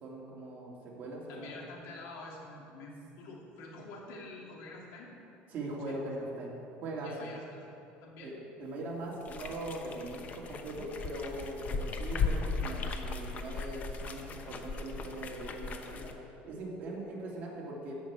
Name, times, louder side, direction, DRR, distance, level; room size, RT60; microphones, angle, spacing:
voice 1, 0.0-1.5 5.5-6.5 6.8-7.3 8.2-16.1 16.4-18.0, right 2 dB, 40° right, -4 dB, 2.9 m, -40 dB
voice 2, 1.3-5.1 5.9-6.0 7.0-7.6 8.0-8.3, left 2 dB, 75° left, -2 dB, 2.8 m, -47 dB
sound 1, 9.2-16.1, left 4 dB, 35° left, 0.9 m, -37 dB
14.0 x 5.4 x 8.3 m, 2.8 s
cardioid pair, 150°, 4 cm